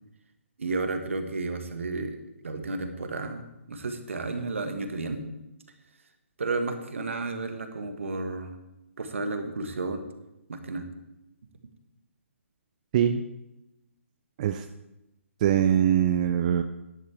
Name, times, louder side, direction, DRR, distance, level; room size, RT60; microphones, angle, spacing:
voice 1, 0.6-2.2 2.4-5.2 6.4-8.5 9.0-10.1 10.5-10.9, right 3 dB, 65° right, 6 dB, 1.5 m, -32 dB
voice 2, 15.4-16.6, right 10 dB, 35° right, 8 dB, 0.5 m, -22 dB
12.0 x 10.5 x 3.5 m, 0.93 s
figure-of-eight pair, 140°, 7 cm